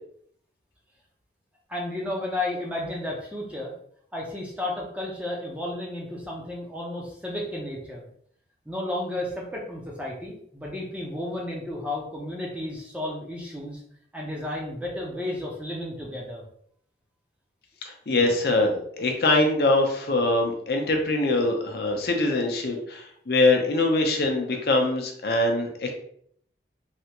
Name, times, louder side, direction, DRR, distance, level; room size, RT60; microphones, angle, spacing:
voice 1, 1.7-3.7 4.1-8.0 8.7-13.8 14.1-16.4 18.1-18.3 18.7-19.1, left 1 dB, 5° right, -3 dB, 0.6 m, -33 dB
voice 2, 18.1-25.9, left 2 dB, 60° left, 2 dB, 0.6 m, -23 dB
3.3 x 2.4 x 2.9 m, 0.64 s
head